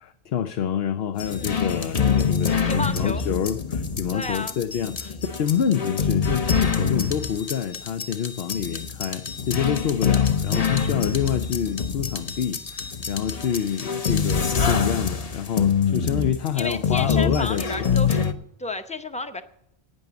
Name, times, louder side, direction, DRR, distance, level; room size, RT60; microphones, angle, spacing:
voice 1, 0.0-18.0, left 8 dB, 80° left, 8 dB, 0.9 m, -27 dB
sound 1, 1.2-18.3, left 6 dB, 40° left, 0.8 m, -25 dB
voice 2, 1.2-1.7 2.6-3.2 4.1-4.5 5.0-5.2 16.5-18.3 18.6-19.4, left 3 dB, 10° left, 8 dB, 0.7 m, -31 dB
11.0 x 9.3 x 6.9 m, 0.77 s
omnidirectional pair, 1.0 m